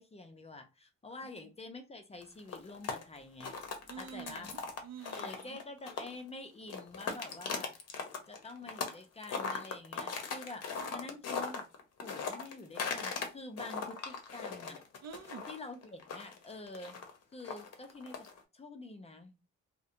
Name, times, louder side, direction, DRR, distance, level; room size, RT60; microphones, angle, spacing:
voice 1, 0.0-3.5 4.0-4.5 5.1-7.7 8.3-11.7 12.0-14.8 15.5-17.0 17.3-18.3 18.5-19.4, left 2 dB, 20° left, 0.5 m, -47 dB
sound 1, 2.2-6.3 6.6-9.0 9.2-13.3 13.6-18.4, left 5 dB, 55° left, 0.7 m, -39 dB
voice 2, 3.9-5.6 10.8-10.9 15.0-15.5, right 7 dB, 60° right, 0.6 m, -48 dB
2.4 x 2.1 x 2.7 m
cardioid pair, 90°, 30 cm